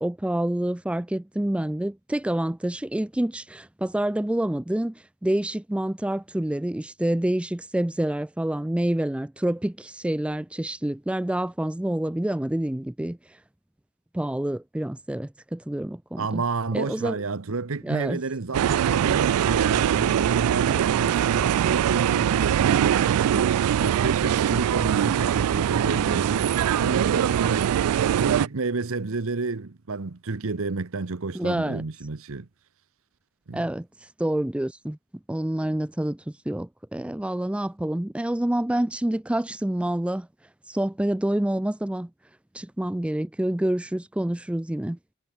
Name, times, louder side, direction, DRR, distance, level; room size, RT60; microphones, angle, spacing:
voice 1, 0.0-4.9 5.2-13.4 14.1-16.4 16.7-17.2 17.8-18.2 31.3-31.8 33.5-35.0 35.3-40.3 40.7-42.1 42.5-45.0, right 1 dB, 5° right, 0.3 m, -27 dB
voice 2, 16.2-32.5 33.5-33.7, right 3 dB, 65° right, 0.9 m, -30 dB
sound 1, 18.5-28.5, right 10 dB, 85° right, 0.3 m, -22 dB
head